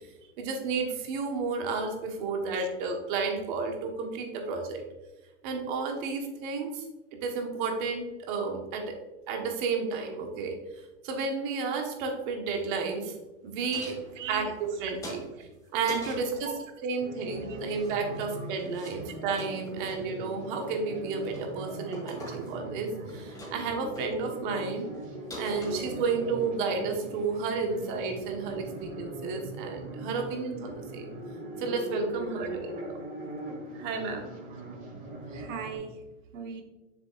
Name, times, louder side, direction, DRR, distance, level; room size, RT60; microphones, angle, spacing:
voice 1, 0.4-4.8 5.4-6.8 7.2-9.0 9.3-10.6 11.0-13.1 13.4-14.0 14.3-15.2 15.7-16.5 16.8-24.9 25.4-31.1 31.6-32.9 33.4-34.3, right 4 dB, 40° right, 3 dB, 1.3 m, -32 dB
sound 1, 13.7-14.8 15.0-16.3 17.6-18.3 18.6-19.0 19.2-19.9 20.4-20.8 21.2-21.5 21.9-22.7 23.0-23.7 24.0-24.1 24.6-24.7 24.9-25.0 25.3-26.3, equal, 10° left, 2.1 m, -43 dB
voice 2, 14.2-14.5 16.3-16.5 17.4-17.6 32.4-32.5 35.3-35.9 36.3-36.6, right 7 dB, 70° right, 6 dB, 1.3 m, -39 dB
sound 2, 17.0-35.8, right 1 dB, 20° right, 1.4 m, -41 dB
7.0 x 6.9 x 2.5 m, 1.1 s
hypercardioid pair, 150°, 39 cm